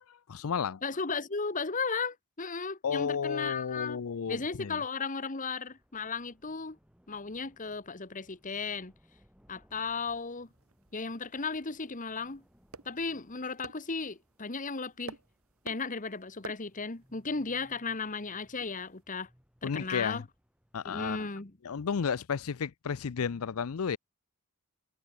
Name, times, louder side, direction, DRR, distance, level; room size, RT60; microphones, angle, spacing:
voice 1, 0.1-0.8 2.8-4.8 19.6-20.2 20.7-21.3 21.6-24.0, left 6 dB, 70° left, 0.5 m, -32 dB
voice 2, 0.8-4.0 4.3-6.8 7.1-8.9 9.5-10.5 10.9-12.4 12.8-15.2 15.6-19.3 19.6-20.2 20.8-21.5, left 4 dB, 35° left, 1.4 m, -35 dB
sound 1, 5.7-21.0, equal, 5° right, 7.5 m, -66 dB
sound 2, 10.2-19.0, right 4 dB, 65° right, 1.3 m, -53 dB
head